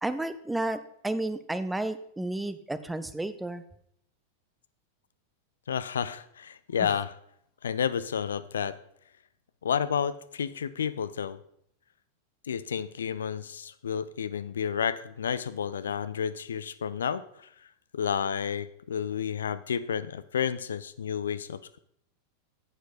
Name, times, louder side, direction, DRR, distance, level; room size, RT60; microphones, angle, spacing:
voice 1, 0.0-3.6 6.8-6.9, right 2 dB, 5° right, 12 dB, 0.6 m, -32 dB
voice 2, 5.7-7.1 7.6-8.7 9.6-11.4 12.5-17.2 17.9-21.8, left 7 dB, 65° left, 15 dB, 0.4 m, -31 dB
9.6 x 8.1 x 4.1 m, 0.71 s
figure-of-eight pair, 90°, 0 cm